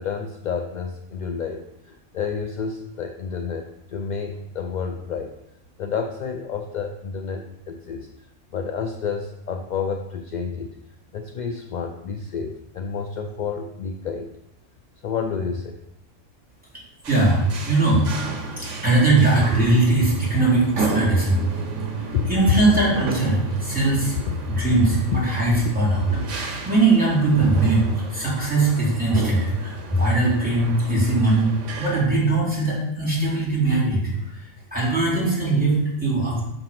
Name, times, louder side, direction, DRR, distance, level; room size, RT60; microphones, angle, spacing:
voice 1, 0.0-5.4 5.8-8.1 8.5-10.8 11.1-14.3 15.0-15.8 22.1-22.2, left 6 dB, 60° left, 5 dB, 0.5 m, -30 dB
sound 1, 17.0-32.0, right 3 dB, 85° right, 1.3 m, -31 dB
voice 2, 17.1-18.3 18.6-21.4 22.3-24.1 24.5-34.4 34.7-36.4, right 2 dB, 5° right, -7 dB, 2.9 m, -20 dB
6.3 x 4.5 x 5.7 m, 0.81 s
omnidirectional pair, 1.2 m